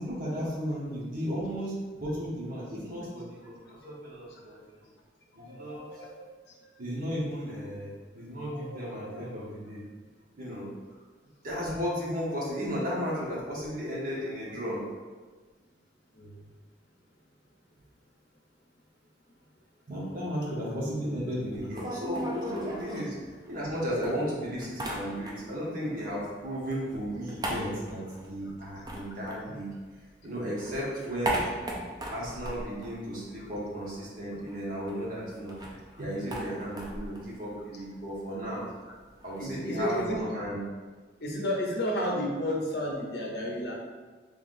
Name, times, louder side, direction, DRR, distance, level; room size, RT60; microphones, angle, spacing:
voice 1, 0.0-4.6 5.3-6.3 6.8-9.8 10.4-10.7 11.4-14.8 19.9-29.7 30.2-31.4 32.1-38.7 39.2-40.6, equal, 50° right, -6 dB, 1.1 m, -34 dB
sound 1, 21.5-23.7 24.0-25.7 25.9-30.1 30.4-33.7 34.0-34.1 34.3-40.1, right 1 dB, 20° right, 0.4 m, -38 dB
voice 2, 39.4-40.2 41.2-43.7, equal, 65° left, -1 dB, 0.7 m, -31 dB
3.8 x 3.3 x 2.6 m, 1.4 s
head